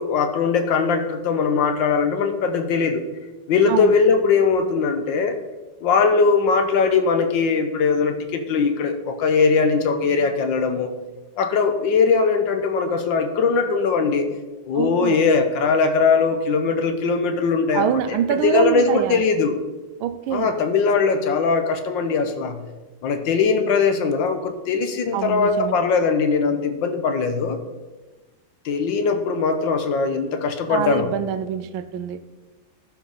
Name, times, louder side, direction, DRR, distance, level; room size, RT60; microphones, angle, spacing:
voice 1, 0.0-3.0 3.5-5.4 5.8-11.0 11.4-14.3 14.7-18.2 18.4-19.5 20.3-22.6 23.0-27.6 28.6-31.1, left 5 dB, 70° left, 7 dB, 1.5 m, -20 dB
voice 2, 14.7-15.2 17.7-19.2 20.0-20.5 25.1-25.8 30.7-32.2, right 9 dB, 80° right, 11 dB, 1.4 m, -25 dB
14.0 x 5.7 x 3.9 m, 1.2 s
omnidirectional pair, 2.2 m